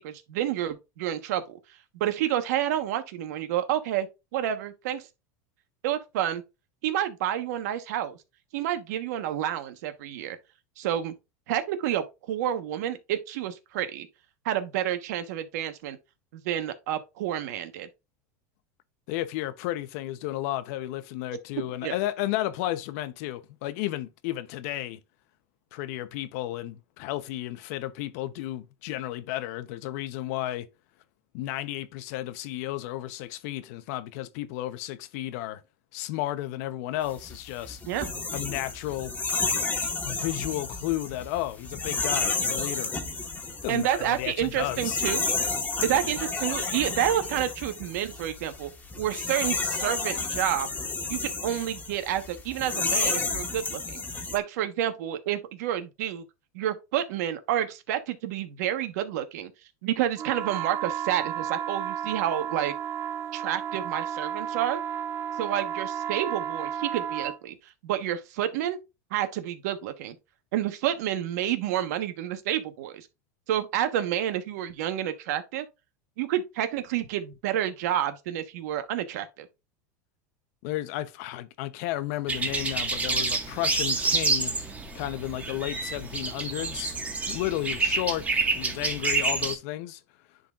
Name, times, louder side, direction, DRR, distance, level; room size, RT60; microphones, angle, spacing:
voice 1, 0.0-1.6 1.9-4.1 4.3-5.1 5.8-6.4 6.8-8.2 8.5-10.4 10.8-11.1 11.5-14.1 14.4-16.0 16.3-17.9 21.8-21.9 37.9-38.1 43.7-45.2 45.8-48.7 49.0-50.8 51.1-56.2 56.5-59.5 59.8-62.7 63.3-64.8 65.4-67.5 67.8-68.8 69.1-70.2 70.5-73.1 73.5-75.7 76.2-79.5, right 11 dB, 75° right, 1.2 m, -29 dB
voice 2, 19.1-25.0 25.7-30.7 31.3-35.6 35.9-37.8 38.3-39.1 40.0-42.9 43.6-45.0 80.6-84.5 84.9-87.0 87.3-88.3 88.5-90.0, left 15 dB, 65° left, 0.8 m, -33 dB
sound 1, 37.1-54.4, left 3 dB, 20° left, 1.5 m, -31 dB
sound 2, 60.2-67.4, right 9 dB, 35° right, 0.6 m, -33 dB
sound 3, 82.3-89.5, right 3 dB, 15° right, 1.6 m, -28 dB
10.5 x 4.1 x 2.5 m
supercardioid pair, 120°, 9 cm